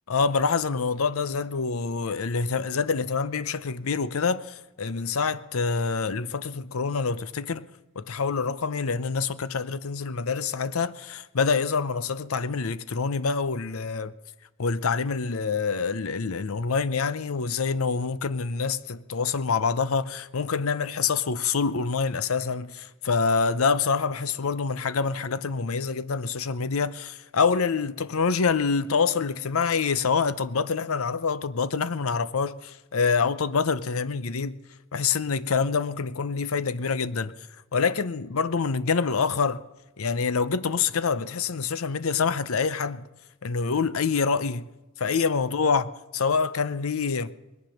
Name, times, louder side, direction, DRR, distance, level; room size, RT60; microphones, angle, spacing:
voice 1, 0.1-7.7 8.0-14.1 14.6-34.6 34.9-37.5 37.7-39.6 40.0-43.1 43.4-44.7 45.0-47.3, left 5 dB, 85° left, 0.7 m, -26 dB
20.5 x 10.5 x 6.4 m
head